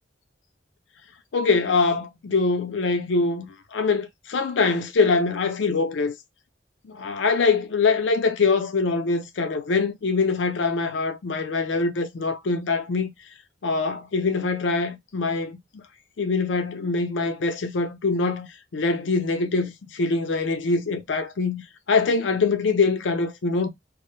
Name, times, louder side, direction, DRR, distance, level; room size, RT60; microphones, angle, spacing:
voice 1, 1.3-6.1 6.8-13.1 13.6-15.8 16.2-21.6 21.9-23.7, left 4 dB, 80° left, 0.5 m, -24 dB
2.0 x 2.0 x 3.0 m
head